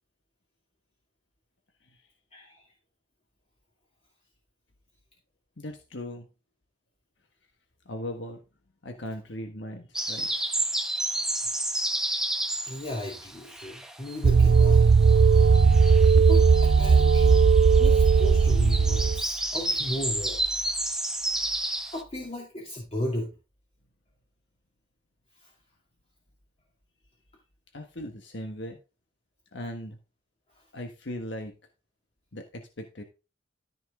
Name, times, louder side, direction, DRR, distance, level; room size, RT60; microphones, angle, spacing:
voice 1, 2.3-2.6 12.7-14.9 16.1-17.4 17.7-20.4 21.9-23.3 25.4-25.5, left 1 dB, 35° left, -2 dB, 2.4 m, -35 dB
voice 2, 5.6-6.3 7.8-8.4 8.8-10.3 27.7-28.8 29.5-30.0 30.7-31.5 32.3-33.0, left 1 dB, 75° left, 4 dB, 1.5 m, -38 dB
sound 1, 9.9-14.3 14.5-22.0, right 1 dB, 5° right, 1.1 m, -31 dB
sound 2, 14.2-19.2, right 5 dB, 80° right, 0.5 m, -18 dB
14.0 x 5.9 x 3.8 m, 0.30 s
head